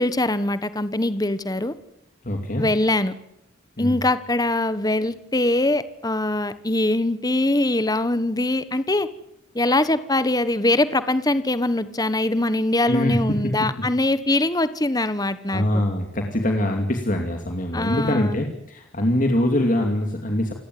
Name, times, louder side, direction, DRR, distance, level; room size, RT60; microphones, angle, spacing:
voice 1, 0.0-1.7 2.6-3.1 3.8-9.1 9.5-15.8 17.7-18.5, left 2 dB, 20° left, 13 dB, 1.3 m, -22 dB
voice 2, 2.2-2.7 3.8-4.0 12.8-13.5 15.5-20.5, left 1 dB, 40° left, 3 dB, 2.7 m, -23 dB
28.5 x 17.5 x 9.5 m, 0.82 s
head